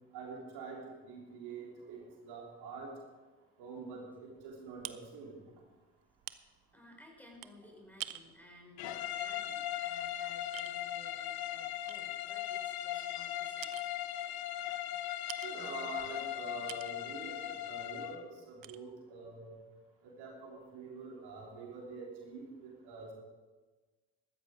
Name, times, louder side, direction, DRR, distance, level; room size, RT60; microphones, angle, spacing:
voice 1, 0.1-0.8 1.0-2.9 3.6-5.4 15.4-19.5 20.0-23.1, right 4 dB, 70° right, -1 dB, 3.4 m, -46 dB
sound 1, 4.4-10.2 10.5-10.7 11.3-11.4 11.9-13.3 13.6-14.0 14.7-14.8 15.3-15.6 16.0-17.1 17.5-17.7 18.0-18.1 18.6-18.8, right 13 dB, 55° right, 0.8 m, -49 dB
voice 2, 6.7-13.8 14.2-14.3, left 1 dB, 5° left, 0 dB, 5.1 m, -58 dB
sound 2, 8.8-18.2, left 12 dB, 65° left, 1.0 m, -38 dB
14.5 x 13.5 x 4.9 m, 1.3 s
hypercardioid pair, 55°, 40 cm